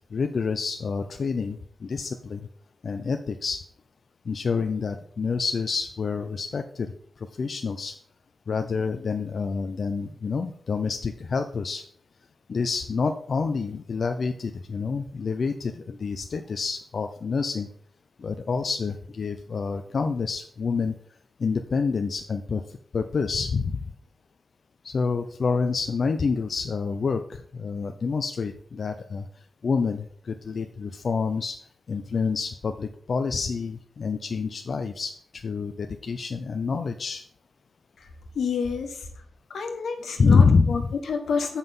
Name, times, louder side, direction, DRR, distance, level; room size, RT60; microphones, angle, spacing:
voice 1, 0.1-2.4 2.8-3.6 4.3-6.9 7.4-7.9 8.5-11.8 12.5-17.7 18.2-20.9 21.4-22.6 22.9-23.8 24.8-29.2 29.6-31.6 31.9-37.2 40.2-40.8, left 5 dB, 55° left, 6 dB, 0.5 m, -27 dB
voice 2, 38.3-39.1 39.5-41.6, left 5 dB, 85° left, 4 dB, 1.4 m, -29 dB
7.9 x 5.6 x 5.3 m, 0.63 s
wide cardioid pair, 105°, 0 cm